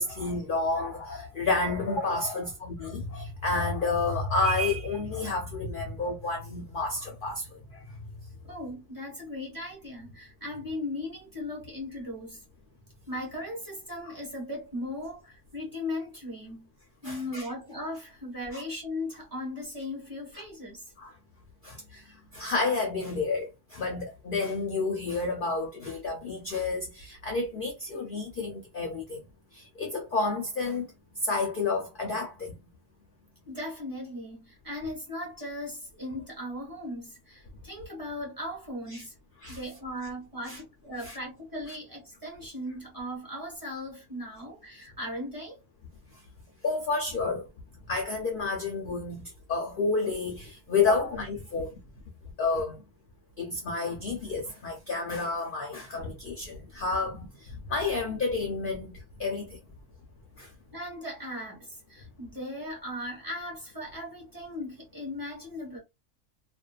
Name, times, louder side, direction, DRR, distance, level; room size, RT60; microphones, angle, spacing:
voice 1, 0.0-7.5 17.0-17.5 18.5-18.6 21.0-21.1 21.6-29.2 29.5-30.9 31.2-32.5 38.9-39.0 39.4-39.6 40.5-40.6 41.0-41.2 46.6-47.4 47.9-51.7 52.4-52.8 53.4-59.6 60.4-60.5, left 3 dB, 55° left, 0.6 m, -30 dB
voice 2, 8.4-12.4 13.1-16.7 17.0-20.9 33.5-39.1 39.5-45.6 60.7-65.8, left 1 dB, 15° right, 1.2 m, -38 dB
2.6 x 2.2 x 2.3 m
omnidirectional pair, 1.4 m